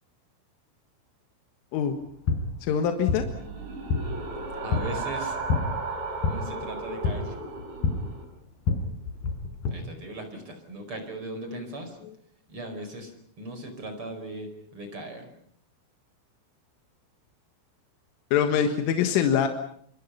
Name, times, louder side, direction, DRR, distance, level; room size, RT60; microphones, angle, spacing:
sound 1, 1.9-9.7, left 4 dB, 50° left, 6.1 m, -30 dB
voice 1, 2.6-3.2 12.0-12.1 18.3-19.5, left 8 dB, 80° left, 6 dB, 4.1 m, -24 dB
sound 2, 3.1-8.2, right 3 dB, 65° right, 7.4 m, -35 dB
voice 2, 4.6-5.4 6.2-7.3 9.7-12.0 12.5-13.1 13.4-15.2, right 1 dB, 25° right, 6 dB, 5.2 m, -38 dB
27.5 x 26.5 x 5.7 m, 0.63 s
omnidirectional pair, 5.8 m